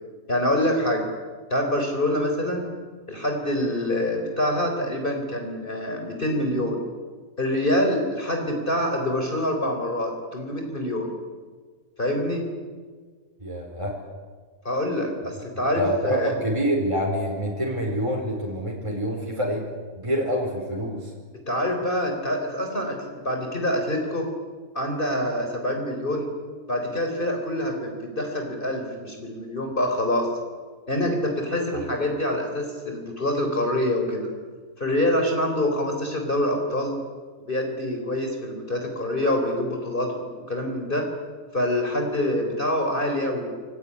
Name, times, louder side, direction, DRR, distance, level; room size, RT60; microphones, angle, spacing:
voice 1, 0.3-1.1 1.5-2.6 3.1-6.8 7.4-11.1 12.0-12.4 14.6-16.3 21.5-24.3 24.7-26.3 26.7-30.3 30.9-34.3 34.8-37.0 37.5-41.1 41.5-43.5, left 1 dB, 35° left, 3 dB, 4.4 m, -26 dB
voice 2, 13.4-13.9 15.8-19.6 20.0-21.1, equal, 20° right, -1 dB, 4.7 m, -26 dB
28.0 x 21.0 x 10.0 m, 1.5 s
omnidirectional pair, 1.5 m